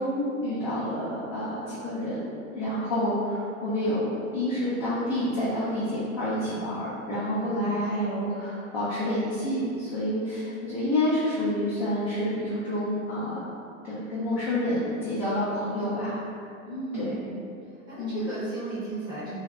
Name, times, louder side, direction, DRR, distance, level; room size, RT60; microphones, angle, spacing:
voice 1, 0.0-13.5 13.8-16.1 16.9-17.2 18.0-18.2, left 1 dB, 25° left, -11 dB, 0.4 m, -28 dB
voice 2, 7.4-7.7 16.6-17.4 17.9-19.4, right 2 dB, 10° right, -11 dB, 0.6 m, -35 dB
2.6 x 2.1 x 2.2 m, 2.5 s
hypercardioid pair, 125°, 41 cm